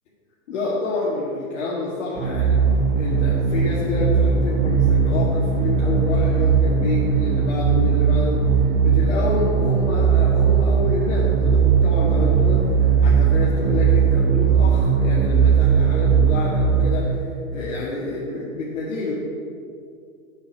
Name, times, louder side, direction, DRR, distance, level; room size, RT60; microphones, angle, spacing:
voice 1, 0.5-2.6 3.0-19.1, left 2 dB, 60° left, -7 dB, 2.0 m, -28 dB
sound 1, 2.2-16.9, right 6 dB, 25° right, 1.2 m, -18 dB
7.9 x 5.3 x 7.3 m, 2.4 s
hypercardioid pair, 145°, 41 cm